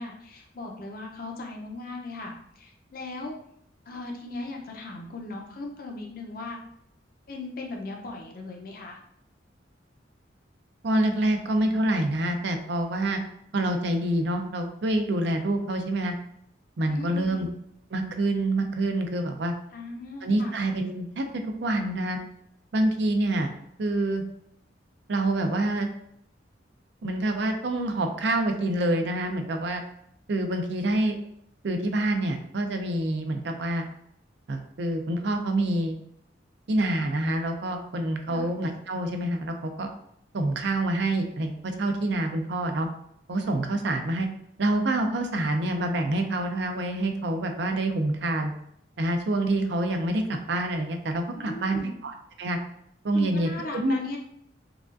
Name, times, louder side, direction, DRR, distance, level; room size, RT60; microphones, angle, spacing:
voice 1, 0.0-3.4 3.9-6.6 7.3-9.0 16.9-17.4 19.7-20.5 38.3-38.5 51.4-52.0 53.1-54.2, left 3 dB, 50° left, 1 dB, 0.6 m, -38 dB
voice 2, 10.8-13.2 13.5-16.1 16.8-17.5 17.9-19.5 20.2-22.2 22.7-23.5 23.8-24.2 25.1-25.9 27.0-29.8 30.3-31.2 31.6-33.9 34.5-36.0 36.7-39.9 40.3-42.9 43.3-44.3 44.6-48.5 49.0-52.6 53.0-54.0, right 1 dB, 65° right, 5 dB, 0.5 m, -27 dB
4.8 x 2.4 x 2.5 m, 0.73 s
head